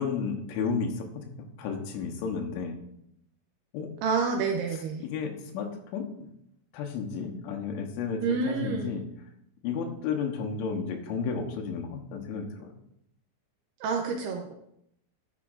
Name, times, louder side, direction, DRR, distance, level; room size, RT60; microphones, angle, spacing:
voice 1, 0.0-2.8 3.7-3.9 5.0-6.3 6.7-9.0 9.6-12.7, left 5 dB, 80° left, 3 dB, 3.4 m, -32 dB
voice 2, 4.0-5.0 8.2-9.0 13.8-14.5, right 5 dB, 90° right, 2 dB, 2.3 m, -28 dB
13.0 x 7.4 x 2.5 m, 0.76 s
omnidirectional pair, 5.6 m